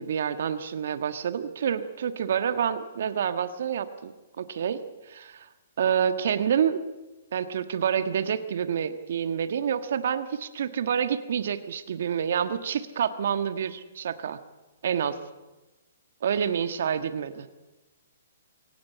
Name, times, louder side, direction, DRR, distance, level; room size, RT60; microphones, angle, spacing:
voice 1, 0.0-4.8 5.1-5.5 5.8-6.8 7.3-14.4 14.8-15.2 16.2-17.5, right 8 dB, 65° right, 11 dB, 1.4 m, -28 dB
22.5 x 17.5 x 8.4 m, 1.1 s
hypercardioid pair, 130°, 0 cm